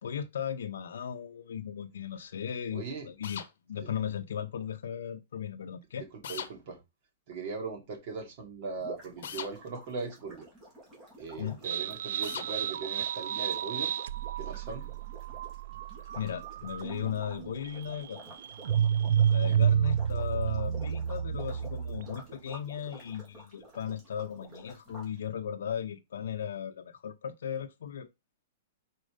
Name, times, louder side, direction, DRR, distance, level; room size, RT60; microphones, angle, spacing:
voice 1, 0.0-3.4 3.7-6.0 11.4-11.6 16.2-18.3 19.3-28.1, left 8 dB, 90° left, 0.6 m, -37 dB
voice 2, 2.7-3.1 3.8-3.9 6.3-6.8 7.3-10.5 11.2-14.0 14.4-14.9 19.4-19.6, right 4 dB, 40° right, 2.6 m, -39 dB
sound 1, 3.2-3.5 6.2-6.5 9.2-9.5 12.2-12.5, left 8 dB, 65° left, 0.9 m, -38 dB
sound 2, 8.8-25.1, right 1 dB, 15° right, 2.6 m, -51 dB
sound 3, 11.6-22.2, right 9 dB, 65° right, 0.3 m, -30 dB
5.2 x 4.3 x 5.0 m
hypercardioid pair, 165°, 0 cm